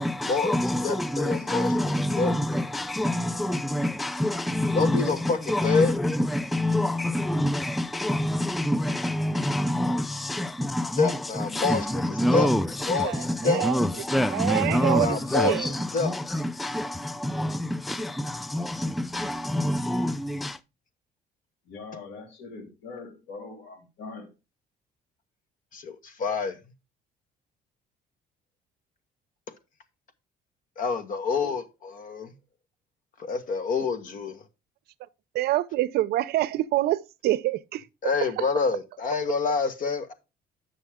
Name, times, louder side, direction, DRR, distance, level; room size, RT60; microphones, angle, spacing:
voice 1, 0.0-20.6, left 1 dB, ahead, 0.4 m, -27 dB
voice 2, 0.8-1.7 2.2-2.3 4.7-5.4 5.6-5.9 11.0-11.8 12.3-12.5 12.9-13.1 13.4-13.6 15.0-15.6 15.9-16.1 25.7-26.6 30.8-32.3 33.2-34.3 38.0-40.1, left 4 dB, 50° left, 1.4 m, -26 dB
voice 3, 13.0-13.8 14.3-15.7 35.3-38.5, right 15 dB, 70° right, 0.6 m, -27 dB
voice 4, 21.6-24.3, left 4 dB, 80° left, 2.9 m, -42 dB
8.8 x 6.1 x 3.5 m
cardioid pair, 110°, 17 cm